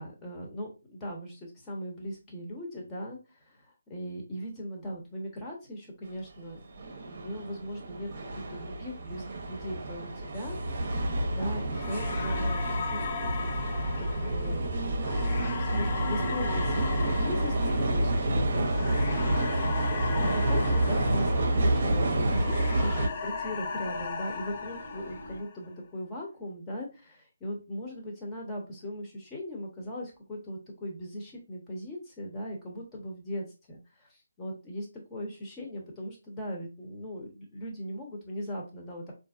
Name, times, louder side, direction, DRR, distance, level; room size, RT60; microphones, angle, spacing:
voice 1, 0.0-6.6 6.9-10.6 10.9-13.5 14.0-14.7 15.0-39.1, equal, 15° left, -2 dB, 1.1 m, -39 dB
sound 1, 6.7-23.1, right 1 dB, 45° right, 0.7 m, -29 dB
sound 2, 11.8-22.0 22.3-25.7, left 6 dB, 30° left, 0.5 m, -38 dB
sound 3, 20.1-25.4, left 1 dB, 85° left, 1.0 m, -42 dB
3.7 x 2.7 x 2.4 m, 0.29 s
figure-of-eight pair, 150°, 0 cm